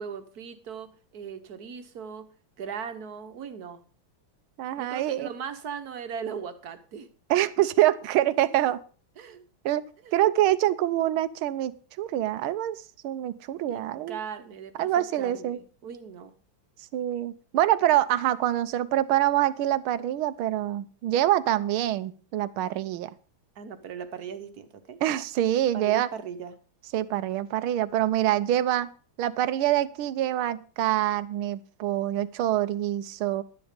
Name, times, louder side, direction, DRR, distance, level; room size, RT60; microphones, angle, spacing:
voice 1, 0.0-2.3 2.6-3.8 4.8-7.4 9.2-9.4 10.0-10.2 13.7-16.3 23.5-25.0 25.7-26.6, right 7 dB, 50° right, 9 dB, 1.5 m, -39 dB
voice 2, 4.6-5.3 7.3-8.8 9.6-9.8 10.1-14.2 14.8-15.6 16.9-23.1 25.0-26.1 26.9-28.9 29.2-33.4, right 13 dB, 85° right, 16 dB, 1.6 m, -25 dB
12.0 x 9.7 x 5.1 m, 0.40 s
omnidirectional pair, 2.3 m